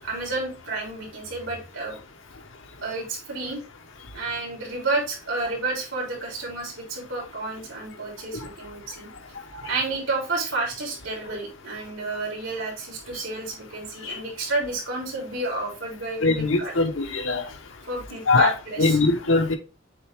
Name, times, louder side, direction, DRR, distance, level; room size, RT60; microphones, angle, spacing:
voice 1, 0.0-2.0 2.8-3.6 4.1-9.1 9.7-16.7 17.9-19.0, right 3 dB, 75° right, 3.4 m, -30 dB
voice 2, 16.2-17.4 18.3-18.5 18.8-19.6, left 3 dB, 80° left, 1.1 m, -21 dB
7.8 x 3.5 x 3.5 m
head